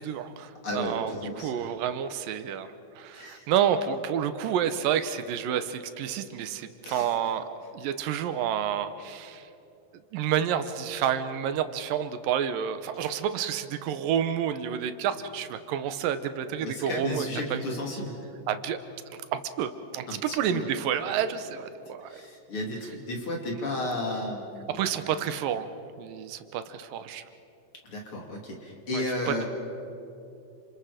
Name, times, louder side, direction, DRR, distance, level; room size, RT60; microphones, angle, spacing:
voice 1, 0.0-9.5 10.1-17.6 18.5-18.8 19.1-22.2 24.7-25.7 26.0-27.2 28.9-29.4, right 9 dB, 85° right, 10 dB, 2.6 m, -29 dB
voice 2, 0.6-1.6 3.1-3.4 6.8-7.1 12.9-13.1 16.6-18.2 20.1-20.7 22.1-24.9 27.8-29.4, left 1 dB, 40° left, 0 dB, 3.4 m, -33 dB
29.5 x 27.5 x 5.0 m, 2.8 s
omnidirectional pair, 3.9 m